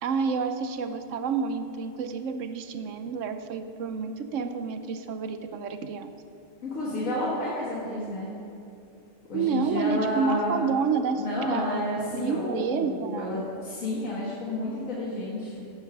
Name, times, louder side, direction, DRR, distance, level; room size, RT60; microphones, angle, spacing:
voice 1, 0.0-6.1 9.3-13.3, right 5 dB, 75° right, 9 dB, 1.0 m, -29 dB
voice 2, 6.6-8.3 9.3-10.6 11.2-15.7, left 1 dB, 85° left, -7 dB, 2.1 m, -30 dB
15.0 x 5.5 x 6.0 m, 2.8 s
omnidirectional pair, 1.3 m